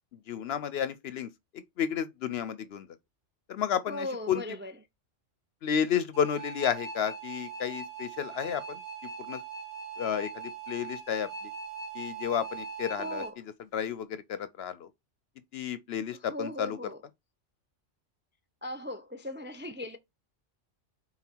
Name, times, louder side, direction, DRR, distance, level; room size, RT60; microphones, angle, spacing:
voice 1, 0.3-2.9 3.5-4.4 5.6-8.8 9.2-9.4 10.0-11.3 11.9-13.2 13.7-14.9 15.5-16.8, left 8 dB, 65° left, 0.8 m, -32 dB
voice 2, 3.9-4.7 13.0-13.4 16.3-17.0 18.6-20.0, left 1 dB, 15° right, 0.4 m, -38 dB
sound 1, 6.1-13.3, right 5 dB, 35° right, 2.4 m, -41 dB
5.7 x 3.9 x 4.5 m
omnidirectional pair, 1.3 m